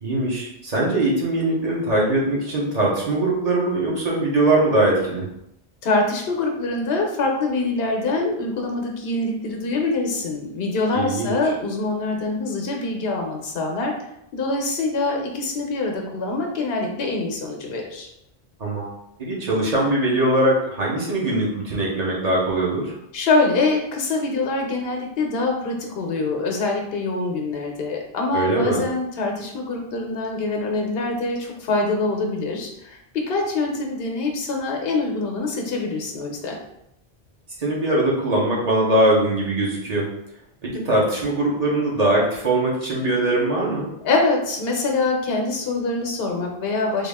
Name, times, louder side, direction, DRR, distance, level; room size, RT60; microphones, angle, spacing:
voice 1, 0.0-5.3 10.9-11.3 18.6-18.9 19.2-22.9 28.3-28.8 37.6-40.1 40.6-43.9, right 1 dB, 40° right, -3 dB, 1.0 m, -21 dB
voice 2, 5.8-14.0 14.3-18.1 23.1-36.6 44.0-47.1, left 3 dB, 75° left, 1 dB, 0.9 m, -24 dB
3.5 x 2.4 x 3.5 m, 0.79 s
omnidirectional pair, 1.0 m